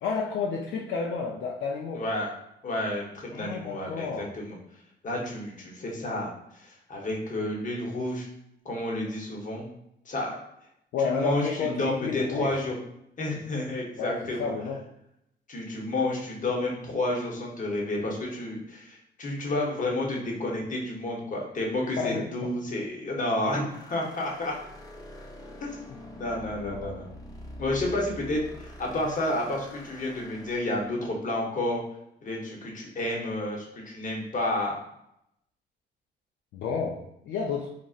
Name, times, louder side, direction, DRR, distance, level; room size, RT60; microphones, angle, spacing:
voice 1, 0.0-2.0 3.3-4.3 10.9-12.6 14.0-14.8 22.0-22.3 26.5-27.0 36.5-37.0 37.2-37.7, left 5 dB, 70° left, -1 dB, 0.4 m, -31 dB
voice 2, 1.9-2.3 2.6-4.6 5.0-8.3 8.6-9.6 10.1-10.3 11.0-11.5 11.8-12.7 13.2-14.5 15.5-24.6 25.6-25.8 26.2-27.0 27.6-31.8 32.2-34.8, left 1 dB, 40° left, -1 dB, 0.9 m, -30 dB
sound 1, 23.7-31.0, left 1 dB, 20° left, 0.5 m, -45 dB
3.8 x 2.0 x 2.4 m, 0.80 s
cardioid pair, 90°, 20 cm